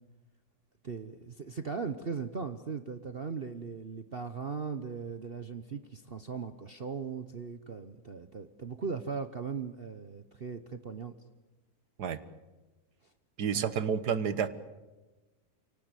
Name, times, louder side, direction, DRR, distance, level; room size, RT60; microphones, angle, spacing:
voice 1, 0.8-11.1 13.5-13.7, right 5 dB, 40° right, 9 dB, 1.0 m, -38 dB
voice 2, 13.4-14.5, right 7 dB, 70° right, 12 dB, 1.8 m, -30 dB
29.0 x 18.5 x 8.3 m, 1.1 s
omnidirectional pair, 1.8 m